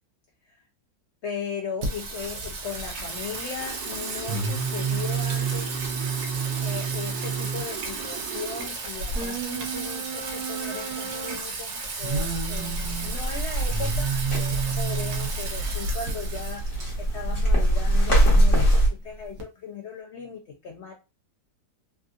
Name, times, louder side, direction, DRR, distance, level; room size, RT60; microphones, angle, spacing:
voice 1, 1.2-6.1 6.6-20.9, left 6 dB, 80° left, 0.6 m, -37 dB
Singing, 1.8-19.4, right 4 dB, 65° right, 0.9 m, -30 dB
sound 1, 3.6-8.7, right 10 dB, 85° right, 1.2 m, -40 dB
sound 2, 12.1-18.9, right 1 dB, 50° left, 1.4 m, -24 dB
3.5 x 2.4 x 2.5 m
omnidirectional pair, 1.8 m